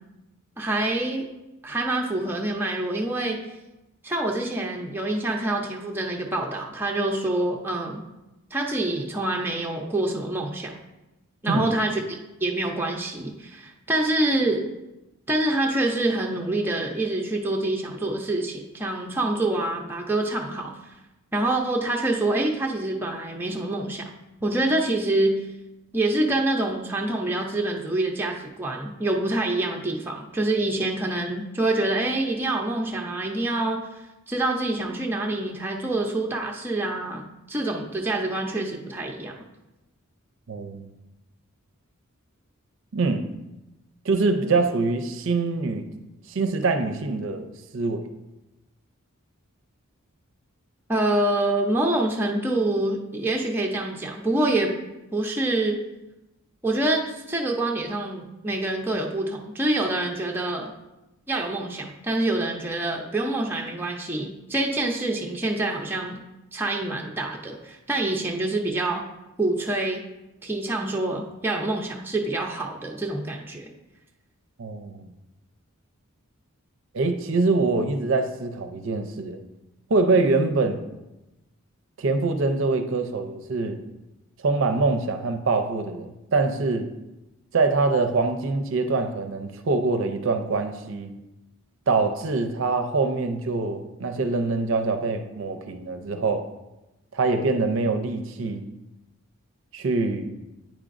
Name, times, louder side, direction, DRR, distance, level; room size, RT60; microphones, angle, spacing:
voice 1, 0.6-1.3 1.6-3.4 4.0-8.0 8.5-10.7 11.4-12.0 12.4-14.6 15.3-20.7 21.3-24.1 24.4-25.4 25.9-33.9 34.3-39.3 50.9-54.8 55.1-55.8 56.6-60.7 61.3-66.2 66.5-69.0 69.4-70.0 70.4-73.7, right 2 dB, 10° right, 0 dB, 0.5 m, -26 dB
voice 2, 40.5-40.9 42.9-43.3 44.0-45.8 46.3-47.4 47.7-48.1 74.6-75.1 76.9-79.4 79.9-80.8 82.0-83.8 84.4-86.9 87.5-91.1 91.9-96.4 97.1-98.7 99.7-100.3, right 3 dB, 60° right, 7 dB, 0.5 m, -24 dB
9.0 x 4.9 x 2.5 m, 0.99 s
head